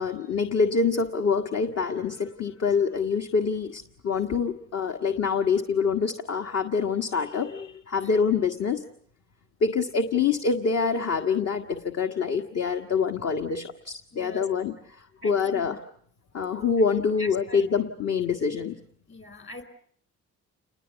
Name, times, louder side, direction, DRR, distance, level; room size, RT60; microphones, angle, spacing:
voice 1, 0.0-8.8 9.6-15.7 16.3-18.7, left 5 dB, 55° left, 5 dB, 1.6 m, -26 dB
voice 2, 14.1-14.5 15.2-15.8 17.2-17.7 19.1-19.6, left 1 dB, 40° left, 12 dB, 4.5 m, -42 dB
29.0 x 20.5 x 8.2 m, 0.62 s
cardioid pair, 90°, 30 cm